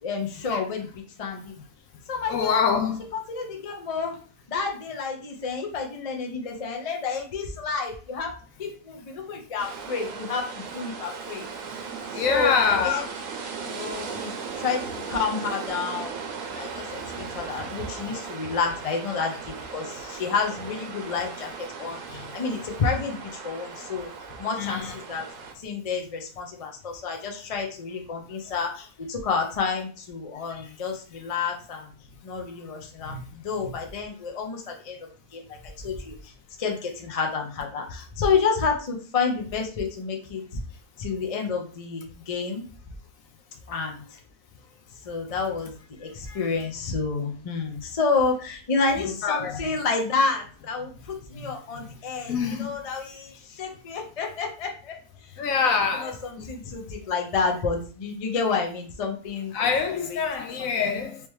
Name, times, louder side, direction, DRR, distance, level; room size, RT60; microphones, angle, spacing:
voice 1, 0.0-1.5 2.1-2.6 3.1-4.1 4.5-8.3 8.6-11.5 12.3-13.0 13.6-14.8 15.1-16.2 16.5-24.1 24.4-25.2 25.6-31.9 32.2-35.0 35.3-35.6 35.8-36.3 36.6-40.6 41.0-42.6 43.7-44.0 45.0-45.7 46.0-55.0 55.6-55.7 56.0-59.5 60.0-60.2 60.6-61.0, left 5 dB, 50° left, 0.4 m, -29 dB
voice 2, 2.3-3.0 12.1-13.1 24.6-24.9 33.1-33.2 46.3-46.4 49.0-49.6 52.3-52.7 55.4-56.5 59.5-61.2, left 6 dB, 70° left, 0.9 m, -25 dB
sound 1, 9.6-25.5, right 5 dB, 65° right, 1.1 m, -37 dB
3.5 x 2.9 x 3.1 m
omnidirectional pair, 1.7 m